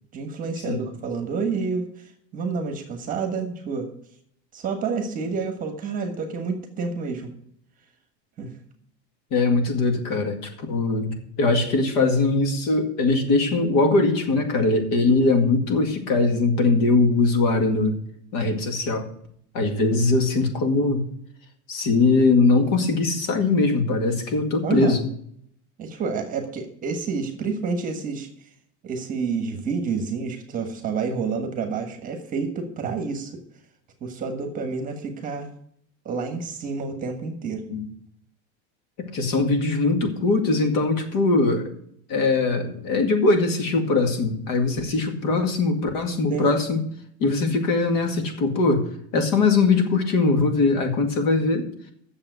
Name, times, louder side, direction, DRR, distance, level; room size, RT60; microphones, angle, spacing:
voice 1, 0.1-3.9 4.5-7.3 8.4-8.5 24.6-25.0 25.8-28.3 28.8-33.4 34.0-35.5 36.0-37.6 46.3-46.5, right 5 dB, 25° right, 6 dB, 1.4 m, -29 dB
voice 2, 9.3-18.0 18.3-19.1 19.5-21.0 21.7-25.0 37.7-37.8 39.1-41.7 42.1-46.8 47.2-51.7, left 3 dB, 50° left, 5 dB, 2.1 m, -21 dB
8.8 x 7.0 x 8.0 m, 0.67 s
cardioid pair, 170°, 33 cm